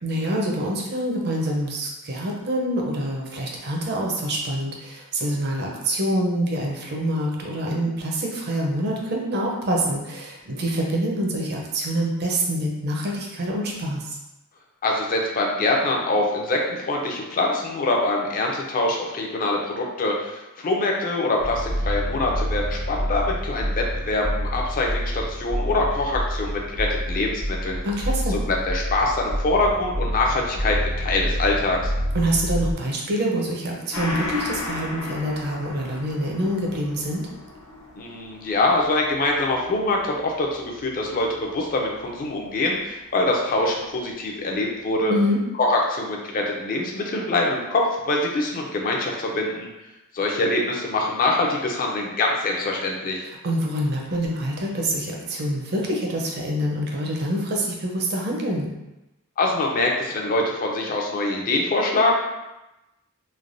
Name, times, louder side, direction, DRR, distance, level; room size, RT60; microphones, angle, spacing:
voice 1, 0.0-14.2 27.8-28.4 32.1-37.2 45.1-45.4 53.2-58.7, right 1 dB, 50° right, -1 dB, 0.5 m, -26 dB
voice 2, 14.8-31.9 38.0-45.2 45.5-49.7 50.1-53.2 59.4-62.2, left 2 dB, 40° left, 0 dB, 0.5 m, -24 dB
sound 1, 21.4-32.7, equal, 70° right, 0.9 m, -28 dB
Gong, 33.9-42.9 43.2-43.3, left 2 dB, 70° left, 0.7 m, -36 dB
3.2 x 2.2 x 2.5 m, 0.97 s
head